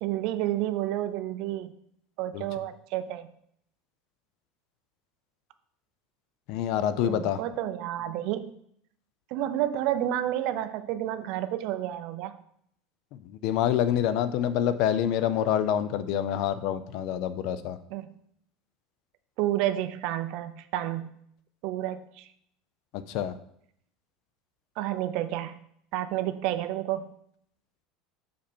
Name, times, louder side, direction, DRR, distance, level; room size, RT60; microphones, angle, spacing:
voice 1, 0.0-1.7 2.2-3.3 7.0-8.5 9.3-12.4 17.9-18.1 19.4-21.2 21.6-22.3 24.8-25.6 25.9-27.1, right 13 dB, 55° right, 11 dB, 0.5 m, -30 dB
voice 2, 6.5-7.4 13.1-17.8 22.9-23.4, left 10 dB, 55° left, 13 dB, 0.5 m, -27 dB
6.8 x 5.0 x 4.4 m, 0.69 s
cardioid pair, 160°, 0 cm